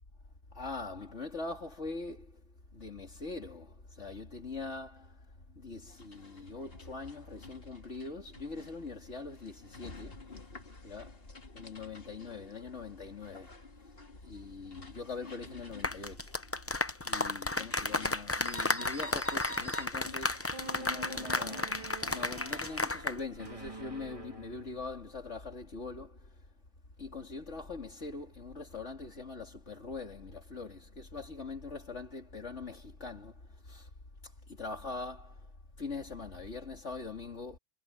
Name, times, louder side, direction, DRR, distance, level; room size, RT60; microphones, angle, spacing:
voice 1, 0.5-2.3 2.7-5.2 5.5-10.2 10.8-11.2 11.5-13.5 14.2-16.3 17.0-21.7 22.0-26.3 27.0-33.3 33.7-33.9 34.5-35.4 35.8-37.6, left 3 dB, 65° left, 3.2 m, -42 dB
sound 1, 5.9-21.2, left 1 dB, 45° left, 2.5 m, -50 dB
sound 2, 15.7-23.2 23.4-23.7, left 2 dB, 15° left, 0.6 m, -33 dB
sound 3, 20.5-25.2, right 2 dB, 25° right, 3.3 m, -46 dB
omnidirectional pair, 1.3 m